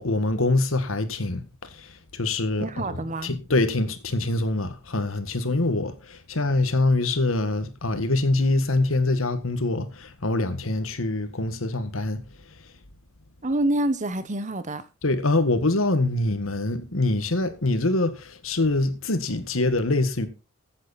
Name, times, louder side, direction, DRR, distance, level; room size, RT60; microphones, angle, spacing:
voice 1, 0.0-1.4 2.1-2.8 3.2-12.2 15.0-20.3, left 2 dB, 80° left, 1.7 m, -24 dB
voice 2, 2.6-3.3 13.4-14.8, right 1 dB, 35° right, 1.1 m, -27 dB
15.0 x 8.0 x 4.2 m
head